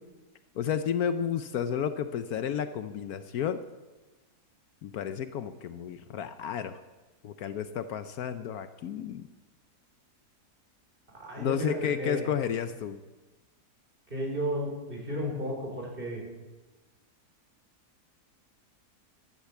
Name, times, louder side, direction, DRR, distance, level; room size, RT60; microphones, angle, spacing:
voice 1, 0.5-3.6 4.8-6.8 7.2-9.3 11.4-13.0, left 8 dB, 70° left, 11 dB, 1.1 m, -32 dB
voice 2, 11.2-12.3 14.1-16.2, equal, 35° right, -1 dB, 4.6 m, -33 dB
14.5 x 11.5 x 7.1 m, 1.2 s
omnidirectional pair, 1.7 m